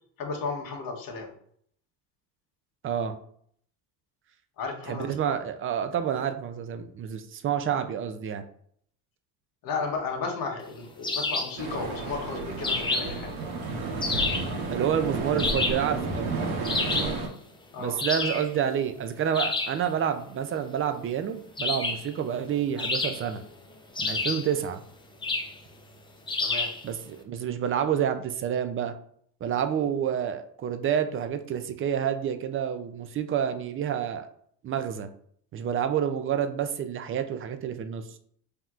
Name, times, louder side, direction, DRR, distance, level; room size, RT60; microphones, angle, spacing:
voice 1, 0.2-1.3 4.6-5.4 9.6-13.3 17.7-18.0 26.4-26.7, left 4 dB, 50° left, 1 dB, 1.3 m, -34 dB
voice 2, 2.8-3.2 4.9-8.4 14.7-16.4 17.8-23.4 24.0-24.8 26.8-28.9 29.4-34.3 34.6-35.1 35.5-38.0, right 8 dB, 30° right, 9 dB, 0.4 m, -28 dB
sound 1, 11.0-11.6 12.6-13.2 14.0-14.5 15.4-15.9 16.6-17.2 18.0-18.5 19.3-19.8 21.6-22.1 22.8-23.5 24.0-24.5 25.2-25.6 26.3-26.8, left 3 dB, 10° left, 0.6 m, -29 dB
sound 2, 11.6-17.3, right 3 dB, 65° right, 1.2 m, -31 dB
5.5 x 2.9 x 2.4 m, 0.64 s
supercardioid pair, 105°, 42 cm